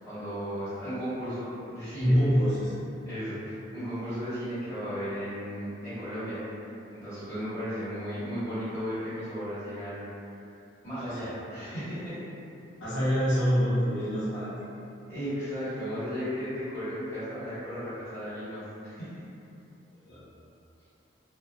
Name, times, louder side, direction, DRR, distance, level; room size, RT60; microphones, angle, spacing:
voice 1, 0.0-2.2 3.0-6.4 6.9-10.1 10.8-12.2 15.1-19.1, equal, 15° left, -16 dB, 1.3 m, -35 dB
voice 2, 2.0-2.7 11.0-11.3 12.8-14.5 20.1-20.2, equal, 75° left, -11 dB, 0.7 m, -25 dB
2.5 x 2.1 x 2.3 m, 2.7 s
head